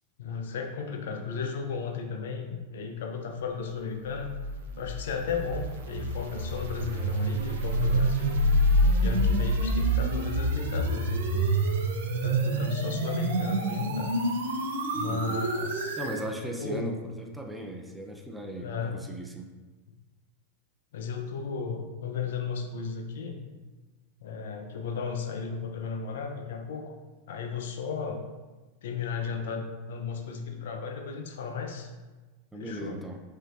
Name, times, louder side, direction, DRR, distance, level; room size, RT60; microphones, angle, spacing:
voice 1, 0.2-4.3 4.8-8.4 9.0-11.5 12.2-14.1 14.9-16.0 16.6-16.9 18.6-19.0 20.9-23.4 24.2-26.9 27.3-28.2 28.8-31.9 32.5-33.0, left 5 dB, 70° left, 4 dB, 0.6 m, -34 dB
sound 1, 4.1-16.2, right 1 dB, 70° right, 0.7 m, -27 dB
voice 2, 15.1-15.4 16.0-19.5 32.5-33.2, right 1 dB, 5° right, 2 dB, 0.6 m, -38 dB
5.1 x 3.8 x 2.5 m, 1.2 s
hypercardioid pair, 100°, 0 cm